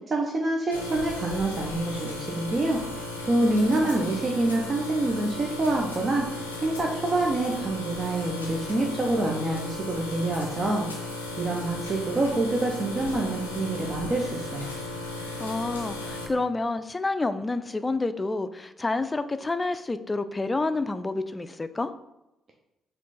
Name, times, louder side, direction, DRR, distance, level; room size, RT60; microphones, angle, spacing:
voice 1, 0.1-6.2 6.6-10.9 11.4-14.7, right 2 dB, 40° right, 0 dB, 0.6 m, -26 dB
sound 1, 0.7-16.3, left 2 dB, 85° left, 0.4 m, -36 dB
voice 2, 3.4-3.9 15.4-21.9, left 3 dB, 25° left, 11 dB, 0.3 m, -29 dB
4.4 x 2.5 x 4.0 m, 0.90 s
figure-of-eight pair, 40°, 0 cm